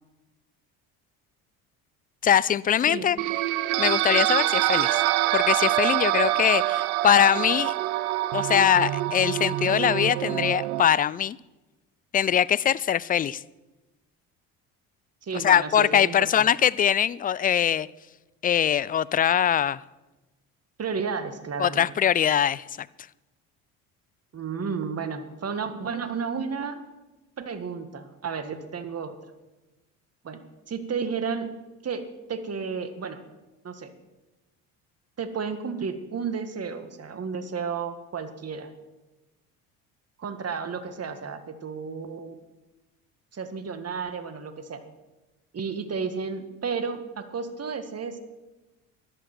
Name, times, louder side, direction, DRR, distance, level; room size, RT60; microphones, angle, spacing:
voice 1, 2.2-3.2 3.8-5.0 5.3-7.7 8.3-11.4 12.1-13.4 15.3-17.9 18.4-19.8 21.6-22.9, left 9 dB, 20° left, 0.3 m, -22 dB
sound 1, 3.2-10.8, right 16 dB, 85° right, 0.6 m, -25 dB
voice 2, 15.2-16.5 20.8-21.9 24.3-26.8 27.4-29.3 30.2-30.4 30.7-31.5 31.8-32.0 32.3-33.2 33.6-33.9 35.2-38.7 40.2-42.4 43.3-44.8 45.5-48.2, right 5 dB, 35° right, 1.8 m, -32 dB
14.0 x 11.5 x 6.1 m
hypercardioid pair, 70°, 42 cm